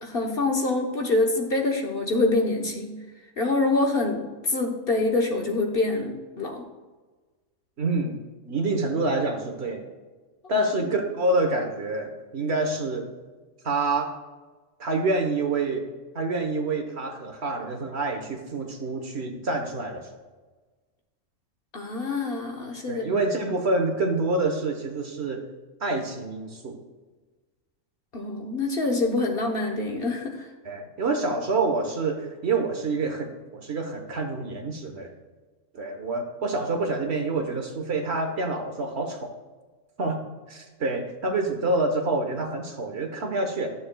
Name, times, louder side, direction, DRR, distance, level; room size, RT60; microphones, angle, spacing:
voice 1, 0.0-3.0 3.4-6.6 21.7-23.1 28.1-30.5, left 2 dB, 50° left, 2 dB, 1.1 m, -25 dB
voice 2, 7.8-8.2 8.5-9.9 10.5-13.0 13.6-14.1 14.8-15.8 16.1-20.0 22.9-25.4 25.8-26.8 30.6-35.1 35.7-39.3 40.0-40.2 40.5-43.7, right 2 dB, 55° right, 4 dB, 1.3 m, -27 dB
12.5 x 7.0 x 2.2 m, 1.3 s
omnidirectional pair, 1.4 m